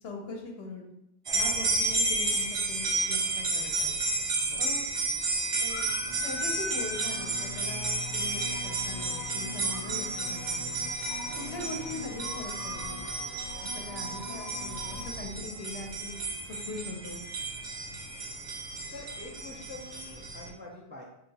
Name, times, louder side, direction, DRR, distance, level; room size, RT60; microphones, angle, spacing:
voice 1, 0.0-0.9 1.3-3.9 4.6-4.8 5.4-5.9 6.2-10.8 11.4-13.1 13.7-16.2 16.6-17.2, left 2 dB, 75° left, 1 dB, 1.0 m, -41 dB
sound 1, 1.3-20.5, right 2 dB, 85° right, 1.2 m, -32 dB
voice 2, 4.4-4.8 18.9-21.0, left 2 dB, 15° right, -4 dB, 0.5 m, -46 dB
sound 2, 5.7-15.1, left 3 dB, 45° left, 0.7 m, -41 dB
3.5 x 2.7 x 4.0 m, 0.82 s
omnidirectional pair, 1.1 m